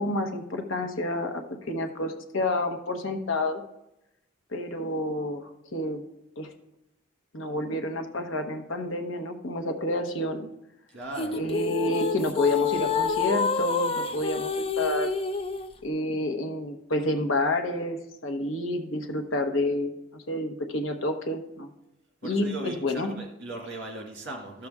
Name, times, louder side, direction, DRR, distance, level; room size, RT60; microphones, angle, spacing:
voice 1, 0.0-3.6 4.5-6.0 6.4-6.5 7.3-10.5 11.4-14.5 14.8-15.1 15.8-21.7 22.2-23.1, left 1 dB, 70° left, 6 dB, 1.1 m, -29 dB
voice 2, 10.9-11.4 22.2-24.7, right 2 dB, 60° right, 1 dB, 2.0 m, -38 dB
sound 1, 11.2-15.7, left 5 dB, 25° left, 0.5 m, -28 dB
13.0 x 6.8 x 3.6 m, 0.88 s
head